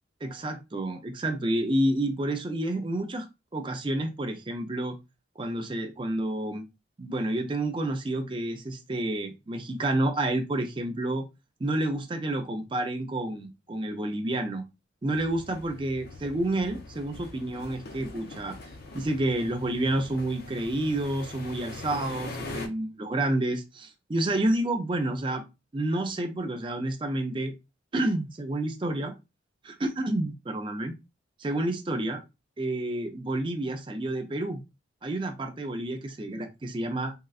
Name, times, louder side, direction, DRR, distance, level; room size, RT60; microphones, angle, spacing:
voice 1, 0.2-3.3 3.5-5.0 5.4-6.7 7.0-11.3 11.6-14.6 15.0-18.6 18.9-25.4 25.7-27.5 27.9-29.1 29.6-30.9 31.4-32.2 32.6-34.6 35.0-37.1, right 1 dB, 25° right, 0.4 m, -29 dB
sound 1, 15.1-22.7, left 2 dB, 50° left, 0.5 m, -42 dB
3.6 x 2.1 x 2.3 m
head